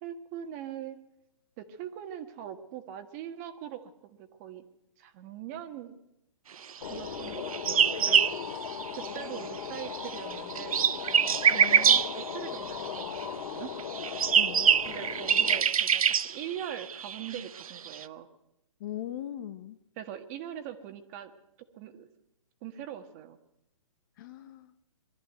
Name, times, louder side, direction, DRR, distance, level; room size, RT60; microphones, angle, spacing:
voice 1, 0.0-1.0 1.6-4.6 5.0-6.0 6.9-8.2 8.5-8.6 8.9-10.8 11.5-13.0 13.4-13.7 14.9-18.3 20.0-21.3 21.7-22.1 22.6-23.4, right 10 dB, 30° right, 8 dB, 1.6 m, -41 dB
sound 1, 6.8-15.6, left 7 dB, 55° left, 2.5 m, -38 dB
sound 2, 7.2-9.4 9.7-13.2 13.8-18.0, right 8 dB, 75° right, 0.8 m, -25 dB
voice 2, 11.5-12.0 14.3-14.7 18.8-19.8 24.2-24.7, left 12 dB, 35° left, 12 dB, 1.0 m, -40 dB
22.5 x 13.5 x 9.3 m, 0.85 s
hypercardioid pair, 160°, 18 cm